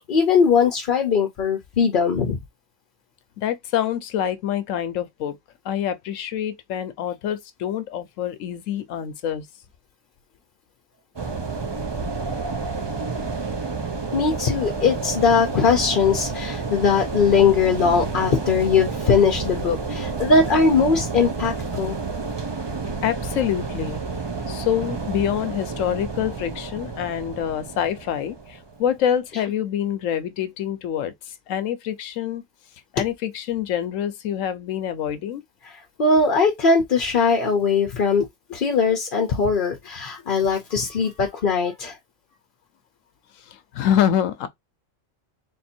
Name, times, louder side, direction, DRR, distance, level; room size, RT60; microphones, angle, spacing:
voice 1, 0.0-2.4 14.1-22.0 36.0-38.2 38.6-41.9, left 5 dB, 50° left, 0.8 m, -20 dB
voice 2, 3.4-5.4 5.6-9.5 23.0-24.0 24.5-32.4 32.9-35.4 38.1-38.2 43.4-44.5, left 10 dB, 85° left, 1.0 m, -26 dB
sound 1, 11.2-29.1, right 4 dB, 30° right, 0.5 m, -30 dB
3.5 x 2.7 x 4.3 m
omnidirectional pair, 1.3 m